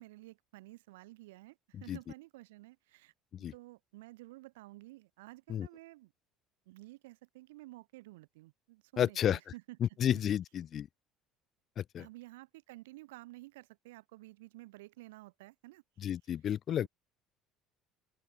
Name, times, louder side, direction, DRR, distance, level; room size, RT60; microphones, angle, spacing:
voice 1, 0.0-3.1 3.5-6.1 6.7-10.2 11.9-16.1 16.7-16.9, right 20 dB, 85° right, 2.5 m, -52 dB
voice 2, 9.0-9.4 9.8-10.9 11.8-12.1 16.0-16.9, left 10 dB, 50° left, 0.7 m, -31 dB
open air
hypercardioid pair, 70°, 0 cm